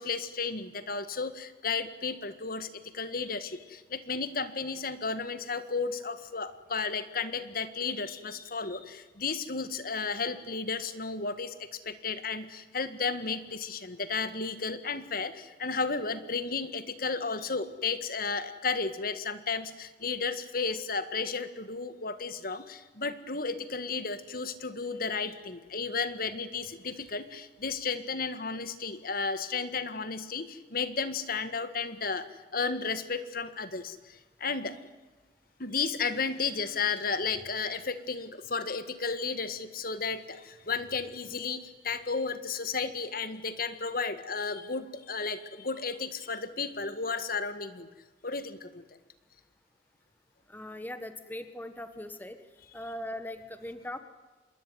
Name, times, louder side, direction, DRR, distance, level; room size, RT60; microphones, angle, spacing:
voice 1, 0.0-32.3 32.5-34.7 35.6-47.9 48.2-48.8, left 4 dB, 50° left, 12 dB, 1.8 m, -33 dB
voice 2, 50.5-52.4 52.7-54.0, left 1 dB, 10° left, 10 dB, 1.4 m, -40 dB
27.0 x 22.0 x 9.4 m, 1.3 s
head